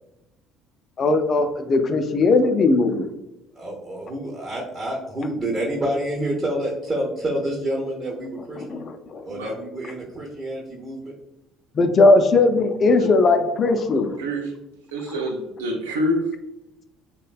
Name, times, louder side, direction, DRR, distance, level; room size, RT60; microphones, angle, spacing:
voice 1, 1.0-3.1 8.7-9.2 11.8-14.1, left 3 dB, 40° left, 8 dB, 0.3 m, -18 dB
voice 2, 3.6-8.8 9.2-11.1, right 1 dB, 25° right, -2 dB, 0.6 m, -28 dB
voice 3, 14.2-14.5 14.9-16.3, equal, 75° right, 1 dB, 0.5 m, -26 dB
3.1 x 2.1 x 2.3 m, 0.94 s
figure-of-eight pair, 55°, 0 cm